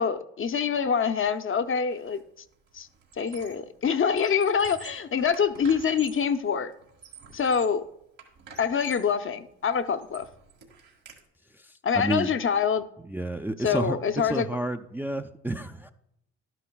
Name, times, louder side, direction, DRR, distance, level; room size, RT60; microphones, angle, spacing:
voice 1, 0.0-2.2 2.7-2.9 3.2-6.7 7.3-7.8 8.6-10.3 11.8-12.8 13.6-14.5, left 6 dB, 40° left, 9 dB, 0.7 m, -25 dB
Squeak, 1.9-2.2 2.5-3.7 4.1-6.3 6.8-7.8 8.2-9.1 9.6-11.2, right 6 dB, 80° right, 2.0 m, -48 dB
voice 2, 11.5-12.3 13.0-15.9, right 1 dB, 5° right, 6 dB, 0.5 m, -31 dB
12.0 x 9.9 x 2.3 m, 0.80 s
supercardioid pair, 60°, 33 cm